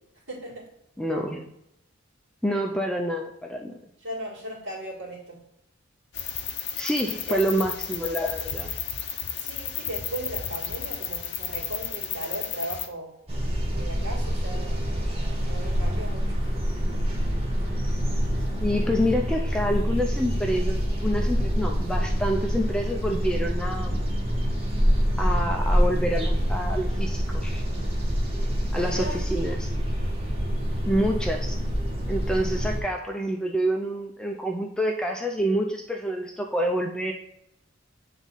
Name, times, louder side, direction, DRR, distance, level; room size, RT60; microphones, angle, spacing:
voice 1, 0.3-0.7 2.5-2.6 4.0-5.4 7.3-7.4 9.4-13.1 13.8-14.9 15.4-16.3 28.8-29.2, right 1 dB, 65° right, -5 dB, 2.2 m, -36 dB
voice 2, 1.0-1.5 2.4-3.7 6.8-8.7 18.6-24.0 25.2-27.6 28.7-29.7 30.9-31.6 32.1-37.1, equal, 5° left, 1 dB, 0.4 m, -27 dB
sound 1, 6.1-12.9, left 8 dB, 55° left, 0.6 m, -33 dB
sound 2, 13.3-32.8, equal, 30° right, 1.1 m, -26 dB
7.4 x 3.6 x 4.0 m, 0.80 s
head